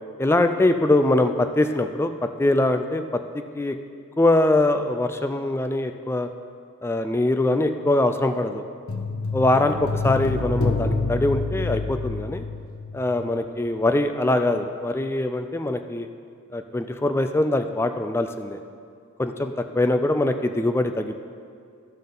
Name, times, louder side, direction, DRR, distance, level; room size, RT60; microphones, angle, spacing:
voice 1, 0.2-3.8 4.2-6.3 6.8-8.6 9.3-12.4 12.9-16.1 16.5-18.6 19.2-21.2, left 2 dB, 10° left, 8 dB, 0.3 m, -23 dB
sound 1, 8.9-13.3 13.6-13.7, left 3 dB, 75° left, 0.8 m, -27 dB
14.5 x 5.4 x 3.9 m, 2.2 s
head